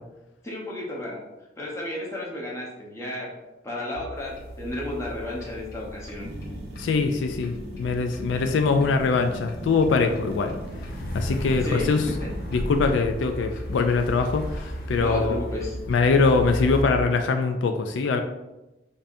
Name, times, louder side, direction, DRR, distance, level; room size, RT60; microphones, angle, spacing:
voice 1, 0.4-1.2 1.6-3.3 3.6-6.3 11.6-11.9 15.0-15.8, left 1 dB, 15° left, -4 dB, 1.0 m, -32 dB
sound 1, 4.2-16.8, equal, 50° left, 0.7 m, -35 dB
sound 2, 6.2-13.0, right 1 dB, 60° right, 0.6 m, -40 dB
voice 2, 6.8-10.5 11.1-12.1 12.5-15.4 15.9-18.2, left 4 dB, 80° left, 6 dB, 0.3 m, -23 dB
5.4 x 2.7 x 2.6 m, 1.0 s
head